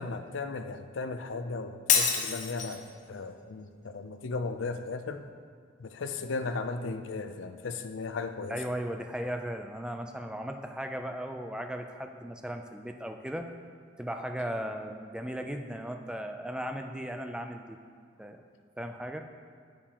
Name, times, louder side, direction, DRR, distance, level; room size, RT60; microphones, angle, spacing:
voice 1, 0.0-2.8 3.1-5.2 5.8-8.6, left 3 dB, 90° left, 8 dB, 0.5 m, -36 dB
Shatter, 1.9-2.9, left 6 dB, 40° left, 0.8 m, -26 dB
voice 2, 8.5-13.5 14.0-17.8 18.2-18.4 18.8-19.2, equal, 5° right, 4 dB, 0.4 m, -36 dB
9.1 x 8.6 x 2.9 m, 2.1 s
head